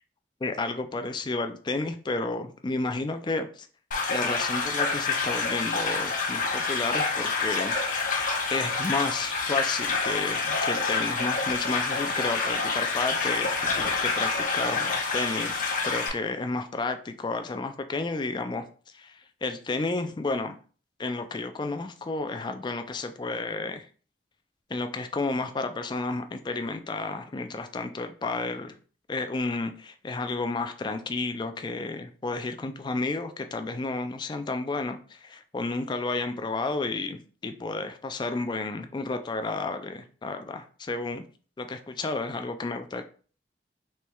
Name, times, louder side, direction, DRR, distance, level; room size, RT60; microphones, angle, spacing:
voice 1, 0.4-3.7 4.1-7.8 8.1-13.5 14.0-18.6 18.9-20.6 21.0-23.9 24.7-28.8 29.1-41.2 42.0-43.0, left 3 dB, 25° left, 7 dB, 0.3 m, -31 dB
sound 1, 3.9-16.1, left 4 dB, 45° left, 0.7 m, -27 dB
4.3 x 3.2 x 2.3 m, 0.41 s
head